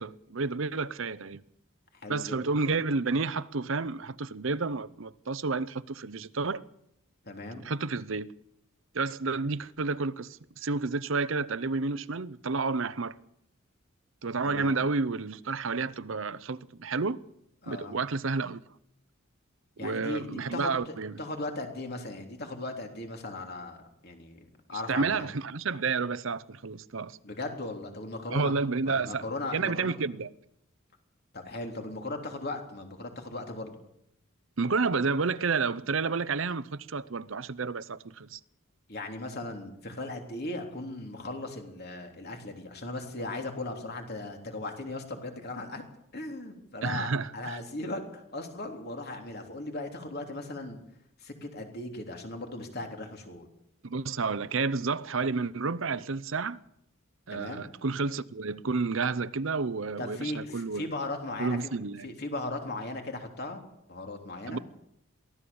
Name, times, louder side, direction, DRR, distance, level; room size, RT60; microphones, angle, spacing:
voice 1, 0.0-1.4 2.1-6.6 7.6-8.3 8.9-13.2 14.2-17.2 17.7-18.6 19.8-21.2 24.7-27.2 28.3-29.3 29.5-30.3 34.6-38.4 46.8-47.6 53.8-56.6 57.3-60.9 61.4-62.1 64.5-64.6, right 4 dB, 65° right, 0.8 m, -30 dB
voice 2, 2.0-2.4 7.2-7.7 14.4-14.7 17.6-17.9 19.8-25.3 27.2-28.5 28.9-29.9 31.3-33.8 38.9-45.8 46.1-50.8 51.2-53.5 57.3-57.7 60.0-61.8 62.0-63.6 63.9-64.6, left 2 dB, 50° left, 3.4 m, -38 dB
23.0 x 16.5 x 7.1 m
head